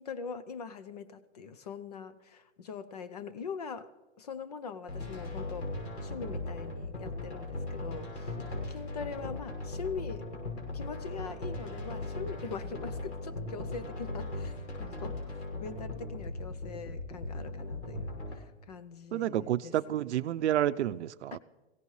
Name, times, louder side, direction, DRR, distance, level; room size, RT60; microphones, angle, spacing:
voice 1, 0.0-3.9 4.2-8.3 8.7-10.3 10.7-19.8 21.3-21.4, left 5 dB, 35° left, 0.6 m, -42 dB
sound 1, 4.9-18.3, left 2 dB, 85° left, 6.0 m, -38 dB
voice 2, 19.1-21.4, right 11 dB, 70° right, 0.6 m, -30 dB
23.0 x 16.5 x 3.2 m
hypercardioid pair, 180°, 35 cm